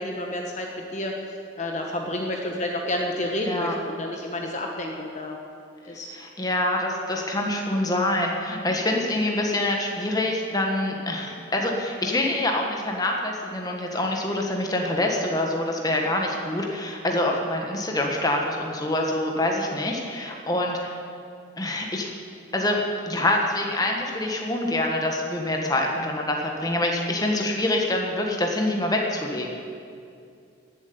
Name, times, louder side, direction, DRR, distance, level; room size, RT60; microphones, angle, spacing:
voice 1, 0.0-5.4 5.8-6.1, left 1 dB, 35° left, 1 dB, 1.3 m, -30 dB
voice 2, 3.4-3.7 6.1-20.9 21.6-22.1 22.5-29.5, left 1 dB, 20° left, 1 dB, 1.4 m, -25 dB
15.0 x 7.8 x 9.4 m, 2.4 s
head